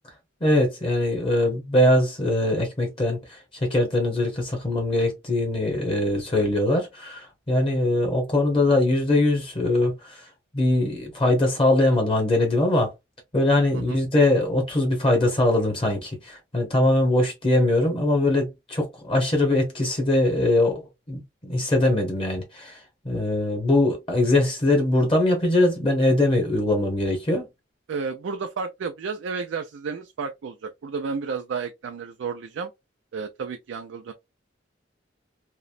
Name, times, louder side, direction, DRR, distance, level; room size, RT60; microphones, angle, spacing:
voice 1, 0.4-10.2 10.5-12.9 13.3-22.8 23.0-27.5, left 1 dB, 30° left, 0.9 m, -22 dB
voice 2, 27.9-32.7 33.1-34.1, right 5 dB, 80° right, 0.4 m, -32 dB
3.0 x 2.0 x 2.4 m
head